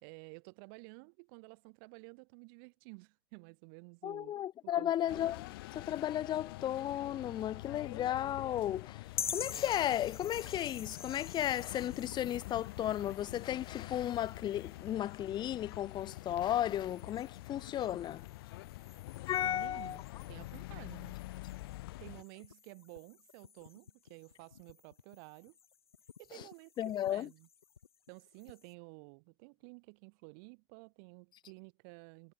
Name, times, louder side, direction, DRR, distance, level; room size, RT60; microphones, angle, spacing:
voice 1, 0.0-4.4 4.7-5.3 19.4-20.0 20.3-21.2 22.0-25.6 26.2-27.5 28.1-32.3, right 36 dB, 65° right, 3.5 m, -53 dB
voice 2, 4.0-5.5 5.7-9.0 9.3-18.3 19.3-20.0 26.8-27.3, left 11 dB, 35° left, 0.5 m, -34 dB
sound 1, 5.1-22.2, left 20 dB, 70° left, 1.4 m, -46 dB
sound 2, 9.1-28.7, left 7 dB, 90° left, 2.2 m, -49 dB
hypercardioid pair, 80°, 13 cm